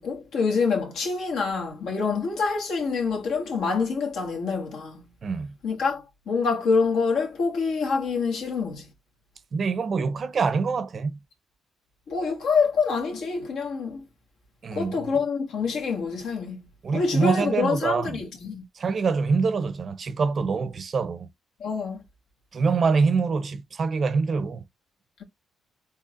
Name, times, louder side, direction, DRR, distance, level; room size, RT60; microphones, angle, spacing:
voice 1, 0.0-5.0 5.6-8.8 12.1-14.0 14.7-16.6 16.9-18.6 21.6-22.0, left 4 dB, 75° left, 1.6 m, -26 dB
voice 2, 5.2-5.5 9.5-11.2 14.6-15.1 16.8-18.2 18.8-21.3 22.5-24.6, right 4 dB, 45° right, 0.5 m, -25 dB
4.2 x 3.4 x 2.5 m
cardioid pair, 90°, 0 cm